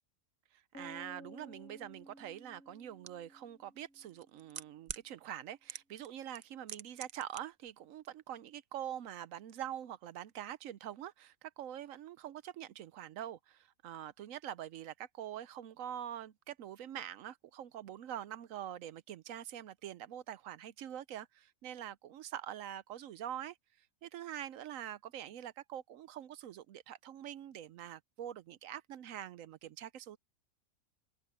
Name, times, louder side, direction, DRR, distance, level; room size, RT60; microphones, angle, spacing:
voice 1, 0.5-30.2, right 11 dB, 75° right, 1.0 m, -45 dB
sound 1, 0.7-4.7, equal, 75° left, 2.0 m, -55 dB
sound 2, 3.1-3.2 4.1-5.1 5.7-6.1 6.3-7.4 7.7-7.8, right 8 dB, 55° right, 0.4 m, -43 dB
omnidirectional pair, 1.4 m